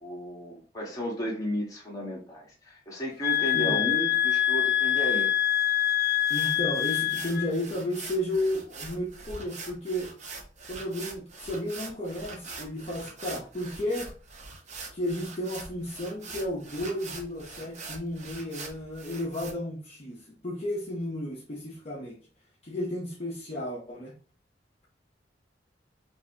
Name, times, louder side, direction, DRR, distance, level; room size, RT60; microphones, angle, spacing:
voice 1, 0.0-5.3, equal, 20° left, 1.4 m, -34 dB
sound 1, 3.2-7.5, left 12 dB, 60° left, 0.4 m, -25 dB
voice 2, 3.5-3.8 6.3-10.1 10.7-14.1 14.9-22.2 22.6-24.1, left 1 dB, 35° left, 0.9 m, -33 dB
sound 2, 6.0-19.5, right 4 dB, 40° right, 0.8 m, -43 dB
5.4 x 2.6 x 2.9 m
head